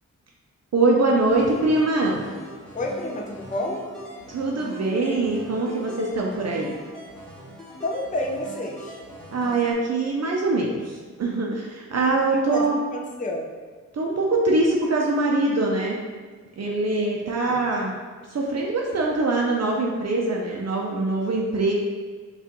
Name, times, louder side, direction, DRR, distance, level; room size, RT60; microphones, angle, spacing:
voice 1, 0.7-2.3 4.3-6.7 9.3-12.8 13.9-16.0 16.6-17.9 18.3-21.7, right 2 dB, 55° right, -1 dB, 0.5 m, -23 dB
sound 1, 1.3-9.7, equal, 5° left, 1.2 m, -42 dB
voice 2, 2.7-3.8 7.8-9.0 12.3-13.5 17.0-17.8, left 1 dB, 25° left, 0 dB, 0.5 m, -30 dB
5.7 x 2.4 x 2.9 m, 1.5 s
wide cardioid pair, 110°, 31 cm